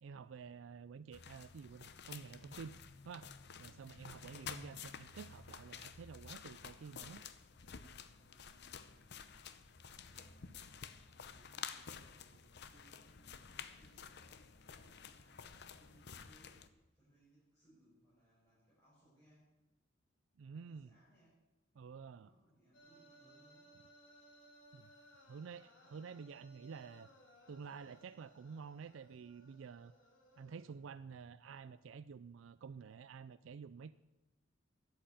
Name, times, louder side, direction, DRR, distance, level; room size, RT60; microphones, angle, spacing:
voice 1, 0.0-2.7 3.0-3.3 3.6-7.2 20.4-21.0 21.8-22.3 24.7-24.9 25.3-27.1 27.5-29.9 30.4-33.9, right 6 dB, 85° right, 14 dB, 0.4 m, -50 dB
sound 1, 1.1-16.7, left 6 dB, 60° left, 0.8 m, -51 dB
voice 2, 7.5-9.7 9.9-10.6 11.1-19.7 20.5-21.5 22.1-23.8, right 1 dB, 15° left, -10 dB, 6.5 m, -70 dB
sound 2, 22.7-30.8, right 1 dB, 80° left, 3.4 m, -64 dB
13.0 x 7.9 x 8.8 m, 1.1 s
head